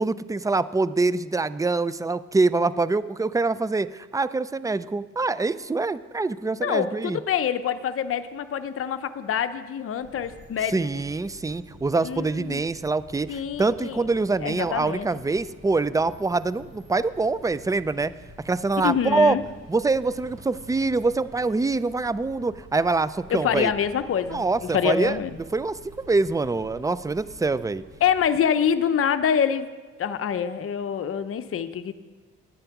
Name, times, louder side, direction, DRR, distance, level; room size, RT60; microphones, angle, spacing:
voice 1, 0.0-7.2 10.7-18.1 18.4-19.4 19.7-23.7 24.3-25.2 25.5-27.8, right 3 dB, 10° right, 16 dB, 0.3 m, -25 dB
voice 2, 6.6-10.8 12.0-12.6 13.3-14.0 14.4-15.1 18.8-19.4 23.3-25.4 28.0-29.7 30.0-31.9, left 8 dB, 45° left, 10 dB, 0.7 m, -26 dB
sound 1, 10.0-28.3, right 1 dB, 40° right, 3.8 m, -48 dB
9.9 x 8.9 x 5.8 m, 1.4 s
cardioid pair, 80°, 32 cm